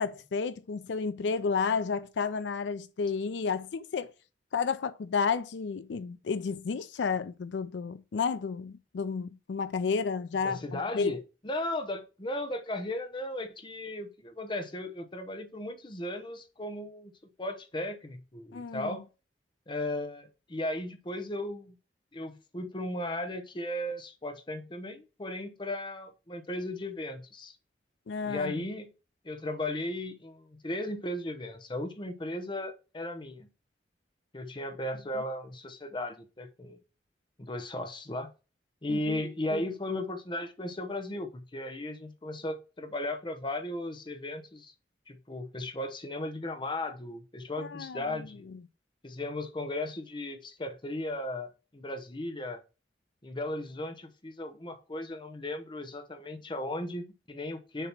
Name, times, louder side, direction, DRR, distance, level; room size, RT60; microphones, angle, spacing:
voice 1, 0.0-4.1 4.5-11.2 18.5-19.0 28.1-28.6 38.9-39.2 39.5-39.6 47.6-48.2 48.5-48.6, left 5 dB, 90° left, 0.4 m, -32 dB
voice 2, 10.4-17.1 17.4-19.0 19.7-21.8 22.1-27.6 28.3-28.9 29.2-33.5 34.3-36.8 37.4-38.3 38.8-44.7 45.1-48.5 49.0-52.6 53.2-57.9, left 1 dB, 30° left, 0.8 m, -36 dB
6.7 x 3.0 x 5.8 m
head